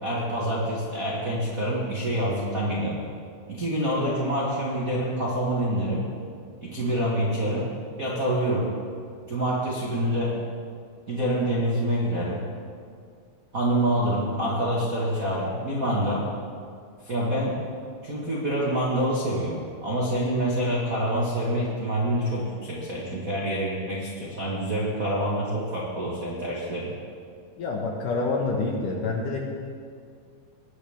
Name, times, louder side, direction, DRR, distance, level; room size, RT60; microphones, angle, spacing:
voice 1, 0.0-3.0 3.5-6.0 6.6-7.7 8.0-8.7 9.3-10.3 11.1-12.4 13.5-16.2 17.0-17.5 18.0-19.6 19.8-26.9, right 1 dB, 55° right, -6 dB, 0.9 m, -26 dB
voice 2, 27.6-29.4, left 3 dB, 65° left, -1 dB, 2.3 m, -27 dB
20.5 x 9.8 x 3.6 m, 2.2 s
omnidirectional pair, 4.7 m